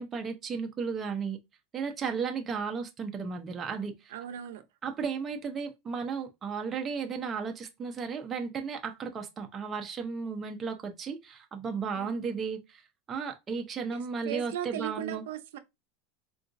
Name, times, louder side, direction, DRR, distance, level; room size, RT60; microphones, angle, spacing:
voice 1, 0.0-1.4 1.7-4.1 4.8-15.2, right 5 dB, 20° right, 0.5 m, -34 dB
voice 2, 4.1-4.6 11.9-12.4 13.9-15.6, right 10 dB, 85° right, 0.5 m, -38 dB
3.7 x 2.4 x 2.5 m
supercardioid pair, 155°, 0 cm